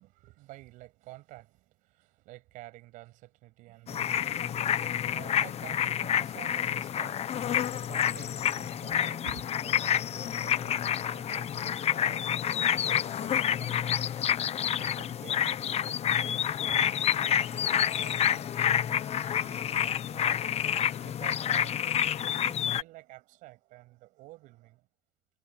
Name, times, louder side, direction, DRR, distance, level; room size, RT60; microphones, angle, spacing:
voice 1, 0.0-12.2 12.5-21.8 22.3-24.9, right 19 dB, 90° right, 7.1 m, -51 dB
sound 1, 3.9-22.8, left 9 dB, 55° left, 1.1 m, -28 dB
cardioid pair, 95°, 13 cm